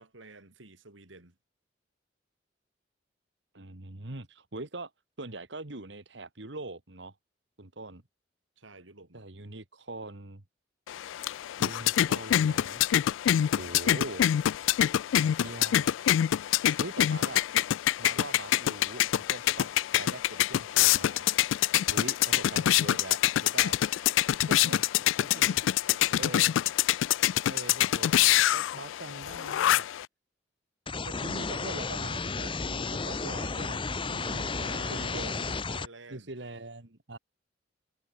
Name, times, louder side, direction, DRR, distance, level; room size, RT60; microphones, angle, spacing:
voice 1, 0.0-1.4 8.6-9.3 25.3-26.3 34.3-35.3 35.7-36.3, right 2 dB, 85° right, 3.7 m, -49 dB
voice 2, 3.5-4.9 5.2-7.2 7.6-8.0 9.1-10.4 11.6-12.9 13.6-14.3 15.2-15.9 16.8-17.5 18.0-19.7 20.0-21.3 21.9-23.8 24.5-25.5 26.2-26.5 27.5-28.1 28.5-29.9 31.1-35.6 36.1-37.2, right 2 dB, 65° right, 1.9 m, -42 dB
sound 1, 10.9-30.1, left 12 dB, 80° left, 0.3 m, -26 dB
sound 2, 30.9-35.9, left 4 dB, 25° left, 0.8 m, -33 dB
head